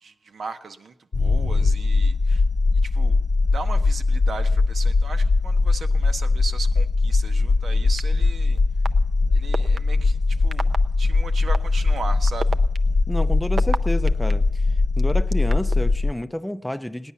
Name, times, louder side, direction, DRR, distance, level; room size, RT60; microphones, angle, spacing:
voice 1, 0.0-2.4 2.8-3.2 3.5-8.6 9.3-10.7 11.0-12.5, right 4 dB, 80° right, 0.9 m, -37 dB
sound 1, 1.1-16.1, left 3 dB, 60° left, 0.5 m, -20 dB
sound 2, 8.0-8.1 8.8-8.9 9.5-9.8 10.5-10.8 11.5-11.6 12.3-14.3 15.0-15.8, right 4 dB, 60° right, 0.5 m, -29 dB
voice 2, 13.1-14.6 15.0-17.1, equal, 5° left, 0.5 m, -29 dB
18.0 x 10.0 x 7.0 m
wide cardioid pair, 110°, 0 cm